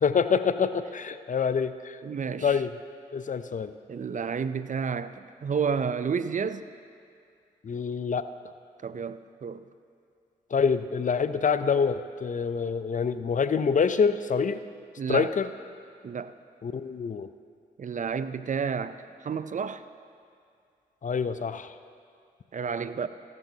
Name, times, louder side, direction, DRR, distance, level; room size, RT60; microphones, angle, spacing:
voice 1, 0.0-2.0 2.4-2.7 3.1-3.7 7.6-8.3 10.5-14.6 15.1-15.5 16.6-17.3 21.0-21.7, left 6 dB, 45° left, 12 dB, 0.5 m, -26 dB
voice 2, 2.0-2.6 3.9-6.7 8.8-9.6 15.0-15.3 16.0-16.3 17.8-19.8 22.5-23.1, right 6 dB, 45° right, 12 dB, 0.5 m, -31 dB
14.5 x 13.0 x 2.8 m, 2.3 s
supercardioid pair, 45°, 19 cm